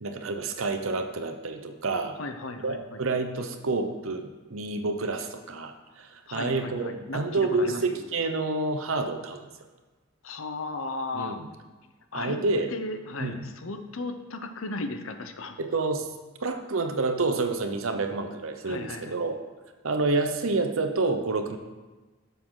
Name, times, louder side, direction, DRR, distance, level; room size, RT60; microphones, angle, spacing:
voice 1, 0.0-2.2 2.6-9.5 11.1-11.5 12.1-12.7 13.2-13.4 15.6-16.1 16.4-19.4 19.8-21.6, right 3 dB, 80° right, 7 dB, 0.8 m, -28 dB
voice 2, 2.2-3.0 6.3-8.0 10.2-11.4 12.1-12.4 12.7-15.6 18.6-19.3, left 3 dB, 75° left, 7 dB, 0.8 m, -36 dB
11.0 x 6.9 x 3.9 m, 1.2 s
head